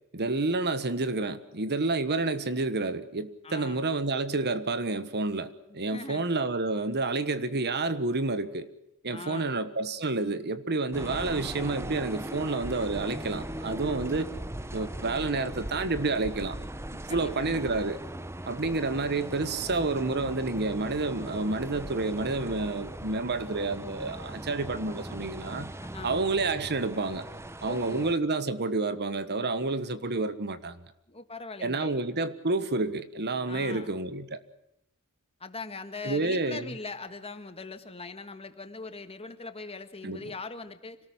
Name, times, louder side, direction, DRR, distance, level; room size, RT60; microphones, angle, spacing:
voice 1, 0.1-8.7 9.0-14.3 14.7-16.6 16.9-18.0 18.4-25.7 26.0-27.3 27.6-30.8 31.6-34.4 36.0-36.7 40.0-40.2, right 3 dB, 50° right, 1.4 m, -29 dB
voice 2, 3.4-3.9 5.7-6.3 9.1-9.6 17.1-17.7 25.8-26.2 27.6-28.1 31.1-32.0 33.5-33.9 35.4-41.0, left 3 dB, 25° left, 1.7 m, -41 dB
sound 1, 10.9-28.1, right 1 dB, 10° right, 0.8 m, -39 dB
26.5 x 19.0 x 6.1 m
head